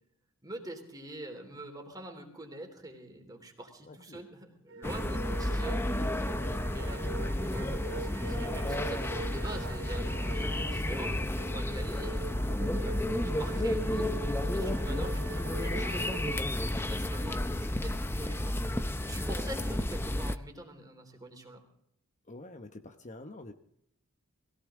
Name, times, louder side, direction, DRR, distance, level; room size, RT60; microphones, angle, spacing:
voice 1, 0.4-5.8 6.7-12.3 12.8-13.0 13.2-14.1 14.5-18.7 19.0-21.6, right 1 dB, 20° right, 3 dB, 3.3 m, -45 dB
voice 2, 3.8-4.2 6.3-6.7 14.8-15.1 22.3-23.5, left 2 dB, 35° left, 7 dB, 1.0 m, -47 dB
sound 1, 4.7-16.4, right 3 dB, 55° right, 0.6 m, -43 dB
sound 2, 4.8-20.4, left 1 dB, 10° left, 0.6 m, -32 dB
21.5 x 17.0 x 3.8 m, 0.71 s
head